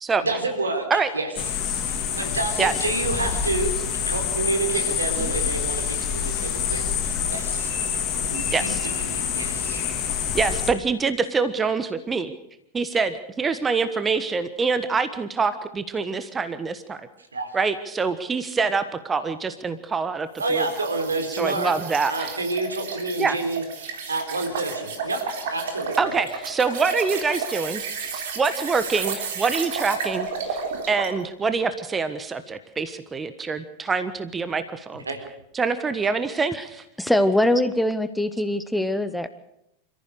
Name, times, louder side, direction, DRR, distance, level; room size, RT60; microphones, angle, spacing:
voice 1, 0.2-1.3 1.8-3.7 4.1-7.7 8.3-9.8 17.3-17.5 20.4-21.7 22.1-25.2 25.5-26.1 35.1-35.2, right 3 dB, 75° right, 5 dB, 3.9 m, -29 dB
sound 1, 1.3-10.7, left 7 dB, 35° left, 3.1 m, -26 dB
voice 2, 8.5-8.9 10.3-12.3 12.7-17.1 17.5-20.7 21.4-22.4 23.2-23.4 26.0-30.6 30.9-35.0 35.5-36.8, right 4 dB, 15° right, 12 dB, 1.3 m, -25 dB
sound 2, 20.4-31.2, right 5 dB, 55° right, 3.7 m, -32 dB
voice 3, 37.0-39.3, left 1 dB, ahead, 11 dB, 1.0 m, -23 dB
28.0 x 14.5 x 6.6 m, 0.80 s
figure-of-eight pair, 90°, 0 cm